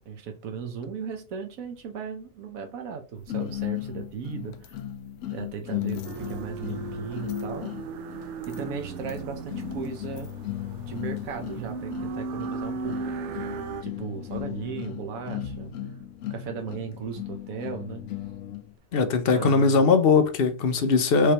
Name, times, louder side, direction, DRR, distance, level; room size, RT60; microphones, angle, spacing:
voice 1, 0.1-4.8 5.3-7.7 8.5-10.3 10.9-13.0 13.8-15.7 16.3-18.0 19.3-19.8, right 6 dB, 90° right, 1.3 m, -36 dB
sound 1, 3.3-18.7, left 13 dB, 80° left, 1.0 m, -36 dB
sound 2, 6.0-13.8, right 4 dB, 65° right, 0.8 m, -36 dB
voice 2, 18.9-21.3, left 4 dB, 55° left, 0.7 m, -20 dB
5.1 x 3.3 x 2.9 m
omnidirectional pair, 1.4 m